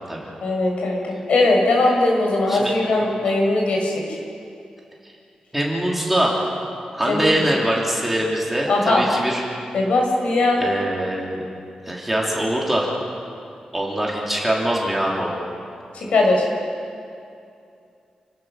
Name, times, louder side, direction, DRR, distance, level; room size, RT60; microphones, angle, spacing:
voice 1, 0.4-4.2 7.1-7.3 8.7-9.0 9.7-10.6 15.9-16.5, left 2 dB, 75° left, 0 dB, 5.3 m, -19 dB
voice 2, 5.5-6.4 6.9-9.4 10.6-11.4 11.9-12.9 13.7-15.4, right 1 dB, 5° right, -3 dB, 3.5 m, -23 dB
29.5 x 17.0 x 6.7 m, 2.5 s
wide cardioid pair, 155°, 2 cm